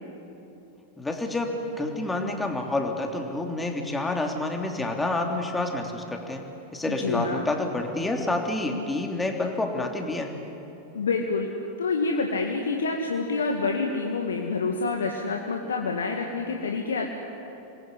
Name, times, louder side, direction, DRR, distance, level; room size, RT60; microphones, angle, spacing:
voice 1, 1.0-10.3, left 2 dB, 10° left, 3 dB, 3.1 m, -28 dB
voice 2, 6.9-7.5 10.9-11.5 11.8-17.0, left 4 dB, 70° left, 2 dB, 1.9 m, -27 dB
27.5 x 21.5 x 9.8 m, 3.0 s
figure-of-eight pair, 90°, 0 cm